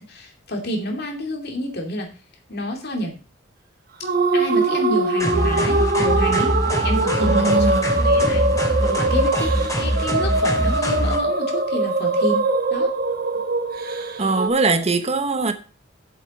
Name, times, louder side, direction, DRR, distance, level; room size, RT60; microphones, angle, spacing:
voice 1, 0.0-2.1 2.5-3.2 4.3-7.7 8.0-8.4 8.8-12.4 12.7-12.9, equal, 55° left, 2.6 m, -29 dB
sound 1, 4.0-14.5, right 2 dB, 50° right, 1.4 m, -22 dB
sound 2, 5.2-11.2, equal, 15° left, 2.7 m, -23 dB
voice 2, 7.2-8.1 14.2-15.5, right 3 dB, 35° right, 0.8 m, -21 dB
8.0 x 7.8 x 5.2 m
head